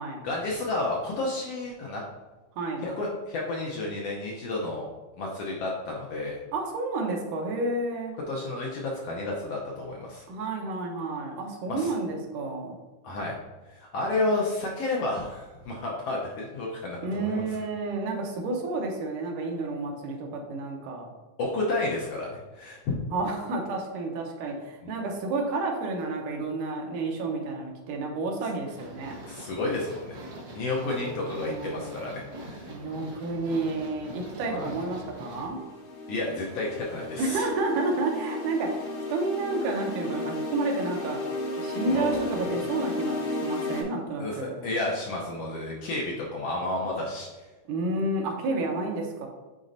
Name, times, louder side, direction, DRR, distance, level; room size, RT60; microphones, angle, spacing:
voice 1, 0.2-2.0 2.8-4.9 5.2-6.4 8.3-10.2 11.7-11.9 13.0-13.3 13.7-17.4 21.4-23.0 24.8-24.9 29.3-30.1 30.5-32.7 34.5-34.7 36.1-37.5 41.8-42.1 44.2-47.3, left 2 dB, 70° left, -2 dB, 1.5 m, -31 dB
voice 2, 2.6-2.9 6.5-8.1 10.3-12.8 17.0-21.1 23.1-29.1 30.6-31.9 32.7-35.6 37.2-41.2 41.6-44.7 47.7-49.3, right 3 dB, 85° right, 1 dB, 2.5 m, -30 dB
sound 1, 28.7-35.5, right 1 dB, 55° right, 1.1 m, -43 dB
sound 2, 35.1-43.8, left 2 dB, 90° left, 3.0 m, -34 dB
9.3 x 4.1 x 2.6 m, 1.2 s
omnidirectional pair, 3.6 m